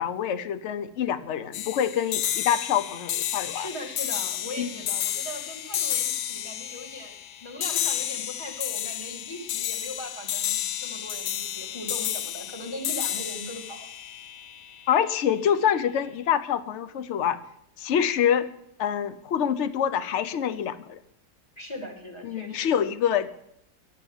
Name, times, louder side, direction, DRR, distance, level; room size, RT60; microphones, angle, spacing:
voice 1, 0.0-3.7 4.6-4.7 14.9-17.4 17.8-18.5 18.8-21.0 22.2-23.3, left 9 dB, 55° left, 13 dB, 0.9 m, -26 dB
sound 1, 1.5-15.0, left 11 dB, 75° left, 1.3 m, -31 dB
voice 2, 3.5-13.9 21.6-22.7, left 1 dB, 15° left, 1 dB, 2.3 m, -39 dB
11.5 x 7.7 x 8.8 m, 0.74 s
omnidirectional pair, 1.8 m